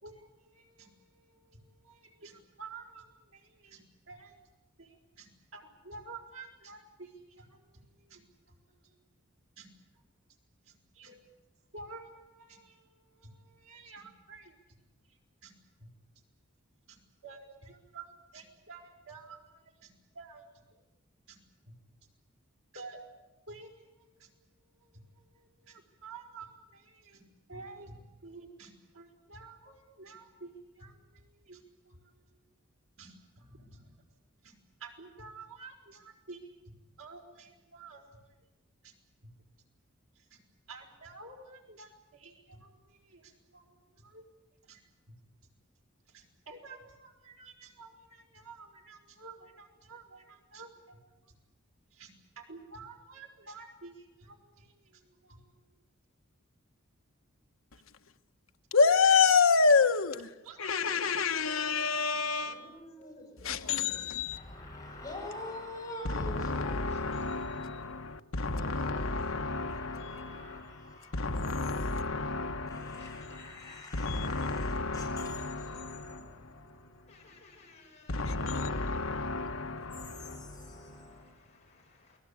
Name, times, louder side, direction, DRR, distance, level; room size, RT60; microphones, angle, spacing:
voice 1, 0.0-4.4 4.8-8.6 8.8-9.0 9.6-9.7 10.7-11.2 11.7-14.6 15.1-15.5 15.8-15.9 16.9-20.8 21.3-21.4 22.7-23.0 23.5-24.3 24.8-32.1 33.0-33.9 34.4-34.5 34.8-38.4 38.8-38.9 40.2-40.4 40.7-44.3 44.7-44.8 45.1-45.2 46.1-51.3 51.9-55.5 57.7-57.8 60.4-61.6, right 4 dB, 90° right, 5.0 m, -51 dB
voice 2, 58.7-60.3 60.6-62.6 63.4-64.4 66.0-70.6 71.1-73.4 73.9-76.8 78.1-80.8, left 4 dB, 75° left, 1.2 m, -29 dB
voice 3, 61.5-63.4 64.3-67.6 68.5-71.5 71.7-77.4 79.8-81.3, left 2 dB, 15° left, 7.6 m, -47 dB
voice 4, 62.1-64.1 66.9-67.8 70.0-71.0 73.0-73.9 77.1-78.9 80.4-82.2, left 2 dB, 35° left, 7.7 m, -57 dB
28.5 x 19.5 x 8.6 m
head